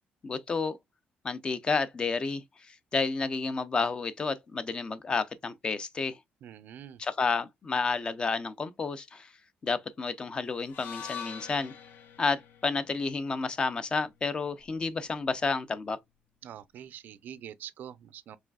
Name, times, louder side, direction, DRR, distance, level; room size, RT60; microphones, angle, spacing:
voice 1, 0.2-0.8 1.2-6.2 7.0-9.3 9.6-11.7 12.2-16.0, left 4 dB, 25° left, 0.5 m, -31 dB
voice 2, 6.4-7.0 16.4-18.4, right 10 dB, 60° right, 0.4 m, -45 dB
sound 1, 10.6-14.8, left 7 dB, 80° left, 0.8 m, -45 dB
4.9 x 3.2 x 2.2 m
cardioid pair, 155°, 3 cm